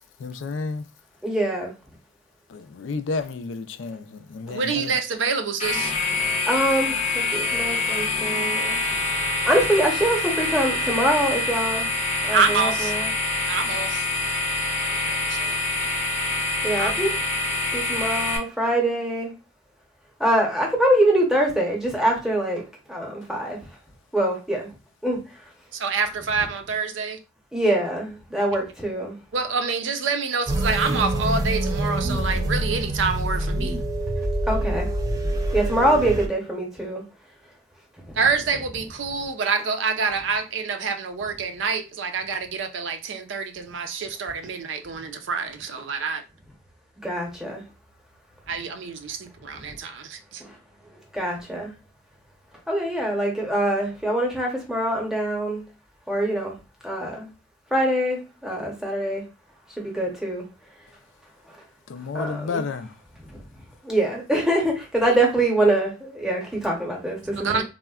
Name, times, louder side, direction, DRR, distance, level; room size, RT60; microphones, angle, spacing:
voice 1, 0.2-0.9 2.5-4.9 61.9-62.9, left 4 dB, 85° left, 0.4 m, -31 dB
voice 2, 1.2-1.7 6.2-8.9 9.4-11.9 12.2-13.1 16.6-17.1 17.7-19.3 20.2-22.6 22.9-23.6 24.1-24.7 25.0-25.2 27.5-29.2 34.5-34.9 35.5-37.0 38.1-38.2 47.0-47.6 50.4-50.6 51.1-51.7 52.7-55.6 56.1-56.6 56.8-57.3 57.7-59.2 59.8-60.5 61.5-61.6 62.1-62.7 63.8-67.6, right 1 dB, 5° right, 0.7 m, -24 dB
voice 3, 4.5-5.9 12.3-12.9 13.5-14.0 14.8-15.6 16.8-16.9 25.7-27.2 29.3-33.8 38.2-46.2 48.5-50.4 67.4-67.6, right 5 dB, 80° right, 0.5 m, -27 dB
sound 1, 5.6-18.4, left 2 dB, 35° left, 0.6 m, -25 dB
sound 2, 30.5-36.3, right 1 dB, 20° right, 0.3 m, -25 dB
3.6 x 2.1 x 2.3 m
head